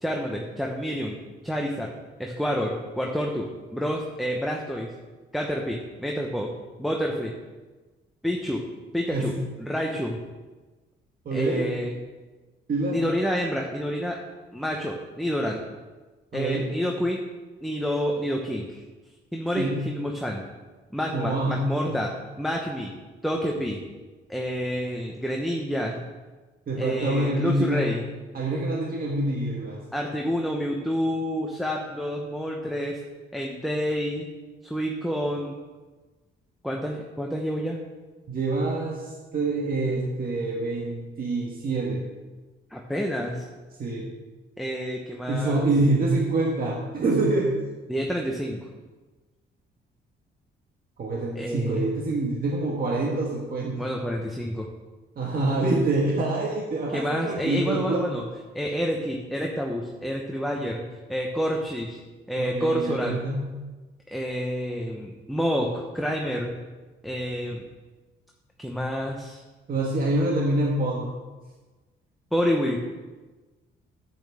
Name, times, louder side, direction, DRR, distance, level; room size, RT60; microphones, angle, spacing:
voice 1, 0.0-1.2 1.4-1.9 2.2-4.9 5.3-6.5 6.8-7.3 8.2-8.6 8.9-9.3 9.6-10.2 11.3-11.9 12.9-14.2 14.5-15.6 16.3-17.2 17.6-18.8 19.3-20.4 20.9-22.1 22.4-22.9 23.2-23.8 24.3-26.0 26.8-28.0 29.9-33.0 33.3-34.3 34.6-35.6 36.6-37.8 42.7-43.4 44.6-45.7 47.9-48.6 51.3-51.8 53.8-54.7 56.9-58.2 58.5-60.8 61.1-62.0 62.3-63.2 64.1-66.5 67.0-67.6 68.6-69.4 72.3-72.8, equal, ahead, 0 dB, 1.0 m, -28 dB
voice 2, 9.1-9.5 11.2-11.7 12.7-13.0 16.3-16.7 19.5-19.8 21.1-22.0 26.7-27.9 28.3-29.8 38.3-42.0 43.8-44.0 45.3-47.5 51.0-53.9 55.2-58.1 62.4-63.5 69.7-71.1, right 2 dB, 50° right, -2 dB, 1.5 m, -26 dB
10.0 x 8.7 x 3.6 m, 1.3 s
cardioid pair, 90°, 20 cm